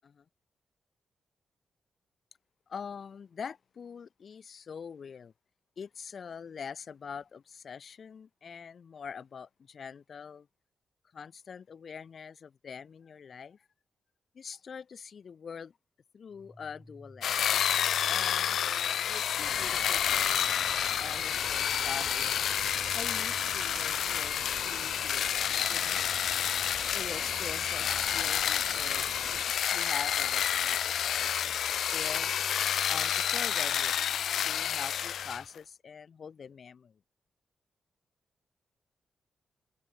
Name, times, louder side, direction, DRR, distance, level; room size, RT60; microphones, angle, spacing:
voice 1, 2.7-5.3 5.8-10.5 11.1-13.6 14.3-15.7 16.1-17.3 17.7-20.4 21.0-22.4 22.9-26.1 26.9-32.3 32.9-34.0 34.4-37.0, left 6 dB, 45° left, 5.2 m, -44 dB
sound 1, 16.3-35.5, left 1 dB, 5° left, 4.4 m, -53 dB
sound 2, 17.2-35.4, left 9 dB, 80° left, 0.6 m, -29 dB
sound 3, 19.4-29.4, right 9 dB, 70° right, 3.0 m, -47 dB
open air
wide cardioid pair, 170°, 0 cm